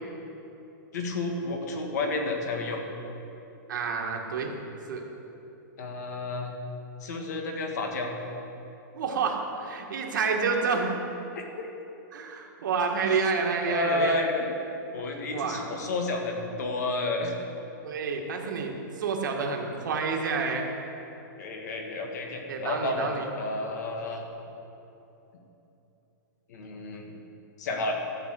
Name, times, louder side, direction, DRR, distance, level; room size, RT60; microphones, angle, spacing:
voice 1, 0.9-2.8 5.8-6.5 7.0-8.1 13.7-14.5 14.9-17.3 21.4-24.2 26.5-27.1 27.6-27.9, left 2 dB, 55° left, 3 dB, 1.7 m, -31 dB
voice 2, 3.7-4.5 4.9-5.0 8.9-10.9 12.1-14.2 15.3-15.6 17.8-20.7 22.5-23.3, right 5 dB, 70° right, 1 dB, 1.8 m, -29 dB
12.5 x 6.9 x 7.7 m, 3.0 s
supercardioid pair, 180°, 11 cm